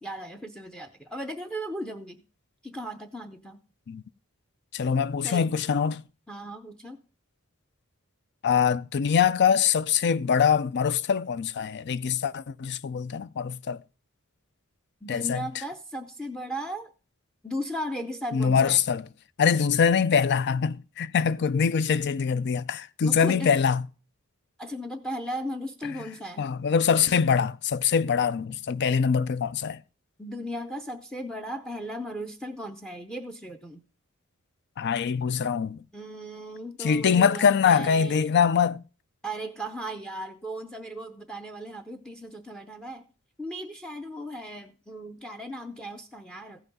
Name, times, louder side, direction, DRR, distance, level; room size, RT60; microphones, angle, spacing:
voice 1, 0.0-2.2 2.6-3.6 5.2-5.5 6.3-7.0 15.0-16.9 17.4-18.8 23.0-23.6 24.6-26.5 30.2-33.8 35.9-38.3 39.2-43.0 43.4-46.6, equal, 5° left, 0.6 m, -36 dB
voice 2, 4.7-6.0 8.4-13.8 15.1-15.4 18.3-19.0 19.4-23.8 26.4-29.8 34.8-35.8 36.8-38.8, left 6 dB, 55° left, 0.4 m, -23 dB
15.0 x 5.8 x 5.4 m
head